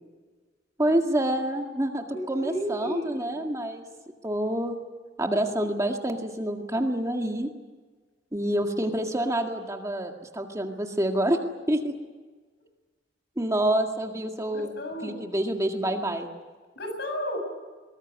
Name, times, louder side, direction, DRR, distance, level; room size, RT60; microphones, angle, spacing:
voice 1, 0.8-3.8 4.2-4.7 5.2-7.5 8.3-11.4 11.7-11.9 13.4-14.7 15.0-16.3, right 1 dB, 20° right, 3 dB, 1.9 m, -27 dB
voice 2, 2.1-3.6 14.5-15.2 16.8-17.4, equal, 65° left, 4 dB, 7.7 m, -33 dB
22.5 x 19.5 x 9.5 m, 1.4 s
head